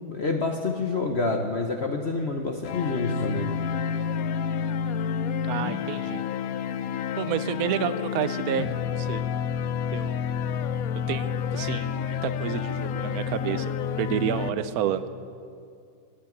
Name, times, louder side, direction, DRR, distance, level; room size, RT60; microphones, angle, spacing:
voice 1, 0.1-3.6, left 3 dB, 55° left, 4 dB, 0.7 m, -27 dB
sound 1, 2.6-14.5, left 7 dB, 85° left, 0.7 m, -29 dB
voice 2, 5.4-6.2 7.2-9.4 9.9-10.2 11.1-15.1, right 9 dB, 65° right, 12 dB, 0.9 m, -30 dB
15.5 x 8.6 x 9.2 m, 2.4 s
omnidirectional pair, 2.1 m